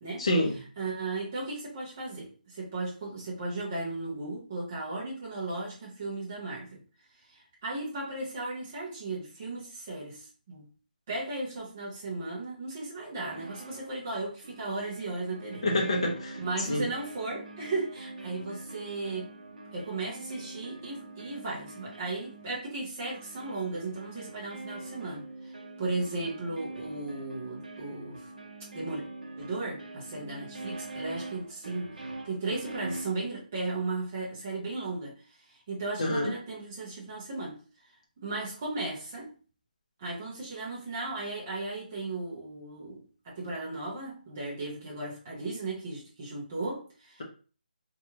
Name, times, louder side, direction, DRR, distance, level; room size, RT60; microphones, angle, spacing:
voice 1, 0.2-0.6 15.6-16.4 16.7-16.9 36.0-36.3, left 1 dB, 35° left, 0.5 m, -27 dB
voice 2, 0.8-6.8 7.3-10.6 11.1-15.6 16.4-19.3 19.7-25.5 25.8-28.3 28.7-29.0 29.4-31.9 32.2-35.1 35.7-37.6 38.2-39.3 40.0-47.2, right 2 dB, 10° right, 0.4 m, -36 dB
sound 1, 13.2-13.9 14.4-33.2, right 2 dB, 55° right, 0.7 m, -44 dB
2.8 x 2.3 x 2.7 m
hypercardioid pair, 180°, 5 cm